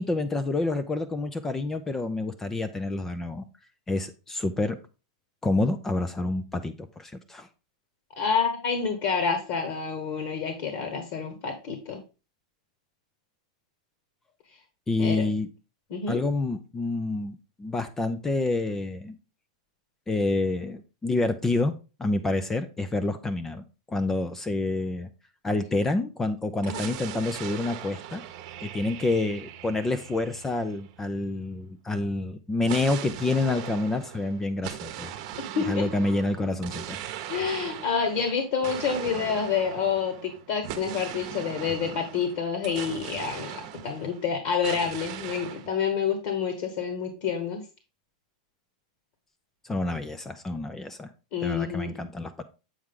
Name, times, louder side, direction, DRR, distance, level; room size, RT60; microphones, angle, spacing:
voice 1, 0.0-3.5 3.9-4.8 5.4-7.5 14.9-15.5 16.1-19.2 20.1-21.7 22.0-25.1 25.4-28.2 28.6-35.1 35.6-37.0 49.6-51.1 51.4-52.4, left 2 dB, 10° left, 10 dB, 0.4 m, -28 dB
voice 2, 8.1-12.0 15.0-15.3 15.9-16.2 26.7-26.9 35.5-35.9 37.3-47.6 51.3-51.9, left 6 dB, 45° left, 7 dB, 1.4 m, -28 dB
sound 1, 26.6-31.3 32.6-44.3 44.6-45.7, right 11 dB, 45° right, 0.9 m, -39 dB
7.5 x 4.7 x 3.6 m, 0.30 s
supercardioid pair, 160°, 4 cm